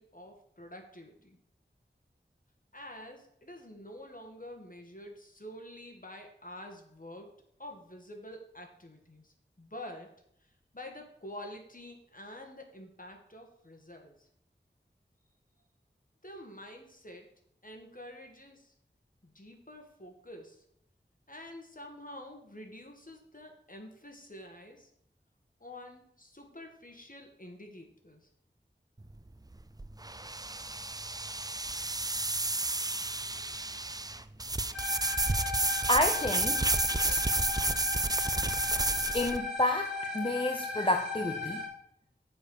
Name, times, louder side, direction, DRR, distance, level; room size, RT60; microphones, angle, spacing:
voice 1, 0.0-1.4 2.7-7.3 7.6-10.1 10.7-14.3 16.2-17.3 17.6-18.7 19.2-20.7 21.3-24.9 25.6-28.3, left 1 dB, 45° left, 2 dB, 1.9 m, -48 dB
sound 1, 29.0-39.4, right 2 dB, 20° right, 0.4 m, -31 dB
sound 2, 34.7-41.7, left 3 dB, ahead, 3.5 m, -37 dB
voice 2, 35.9-36.7 37.0-37.2 39.1-41.7, left 1 dB, 25° left, 5 dB, 0.7 m, -30 dB
7.1 x 5.3 x 6.7 m, 0.72 s
wide cardioid pair, 40°, 20 cm